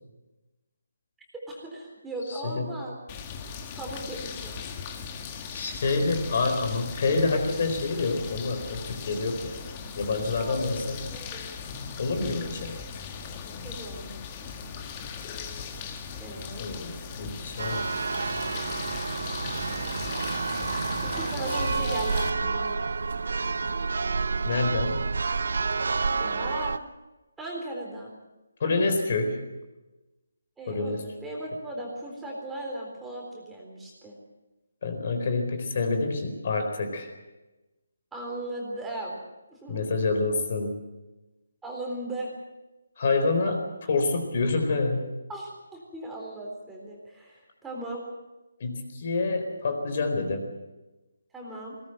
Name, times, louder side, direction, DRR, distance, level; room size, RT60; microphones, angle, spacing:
voice 1, 1.3-3.0 3.8-4.5 9.6-9.8 10.1-10.7 11.1-11.4 12.1-12.7 13.4-14.1 16.2-16.8 21.0-22.8 26.2-26.8 27.4-28.2 30.6-34.1 38.1-39.2 39.5-39.8 41.6-42.3 45.3-45.5 45.9-48.0 51.3-51.8, right 1 dB, 5° right, -2 dB, 3.9 m, -37 dB
voice 2, 2.3-2.7 5.5-9.6 9.9-11.0 12.0-12.8 16.6-17.8 24.4-25.1 28.6-29.4 30.7-31.0 34.8-37.1 39.7-40.7 43.0-45.0 48.6-50.5, left 3 dB, 40° left, 6 dB, 4.3 m, -27 dB
sound 1, 3.1-22.3, left 6 dB, 20° left, 1.8 m, -38 dB
Church bell, 17.6-26.8, right 4 dB, 65° right, 0.8 m, -29 dB
20.5 x 19.0 x 7.9 m, 1.1 s
hypercardioid pair, 165°, 0 cm